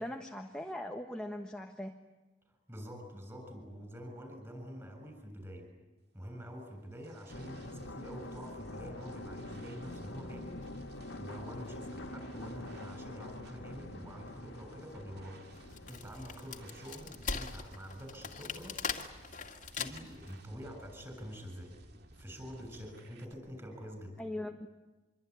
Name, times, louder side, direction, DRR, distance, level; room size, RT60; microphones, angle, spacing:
voice 1, 0.0-1.9 24.2-24.7, left 1 dB, 5° left, 2 dB, 1.4 m, -40 dB
voice 2, 2.7-5.7 6.1-15.4 15.7-21.7 22.1-24.3, equal, 15° right, 5 dB, 7.4 m, -47 dB
sound 1, 6.4-23.3, right 1 dB, 55° right, 2.3 m, -57 dB
sound 2, 7.3-18.7 19.1-19.2, left 2 dB, 80° left, 2.0 m, -46 dB
Wood, 15.5-20.3, left 5 dB, 40° left, 2.2 m, -40 dB
25.5 x 24.0 x 9.7 m, 1.1 s
head